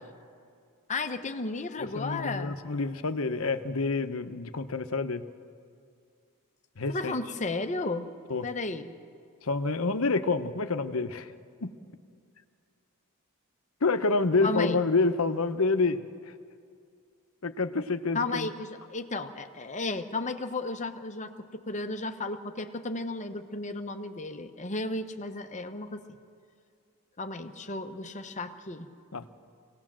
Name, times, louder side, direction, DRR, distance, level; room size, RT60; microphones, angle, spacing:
voice 1, 0.9-2.6 6.9-8.1 8.4-8.9 14.4-14.8 18.1-26.0 27.2-28.9, left 3 dB, 35° left, 7 dB, 1.0 m, -34 dB
voice 2, 2.0-5.2 6.8-7.2 8.3-8.5 9.4-11.3 11.6-11.7 13.8-16.3 17.4-18.5 29.1-29.2, left 3 dB, 70° left, 9 dB, 1.0 m, -28 dB
24.5 x 18.0 x 7.5 m, 2.3 s
head